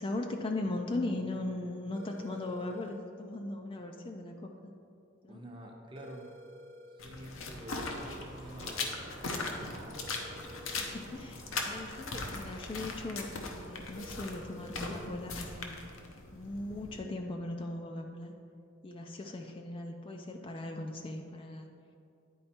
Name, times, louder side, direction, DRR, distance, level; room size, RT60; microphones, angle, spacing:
voice 1, 0.0-4.7 5.2-5.4 10.8-15.8 16.3-18.3 18.8-21.7, left 2 dB, 25° left, 3 dB, 0.4 m, -38 dB
sound 1, 2.0-3.0 6.0-7.0 10.0-11.0 14.0-15.0, right 1 dB, 60° right, 0.6 m, -51 dB
voice 2, 5.3-6.2 7.0-9.8, equal, 25° right, 1 dB, 0.8 m, -48 dB
sound 2, 7.0-17.0, left 3 dB, 80° left, 0.8 m, -40 dB
sound 3, 7.6-12.7, right 1 dB, 40° right, 1.1 m, -52 dB
9.9 x 4.4 x 4.3 m, 2.5 s
head